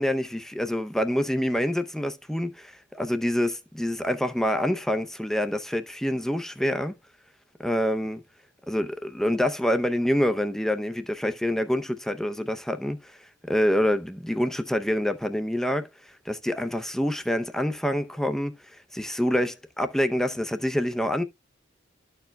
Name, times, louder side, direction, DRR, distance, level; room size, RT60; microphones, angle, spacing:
voice 1, 0.0-6.9 7.6-8.2 8.7-13.1 13.5-15.9 16.3-18.5 18.9-21.2, equal, ahead, 0.6 m, -26 dB
13.0 x 4.6 x 2.2 m
head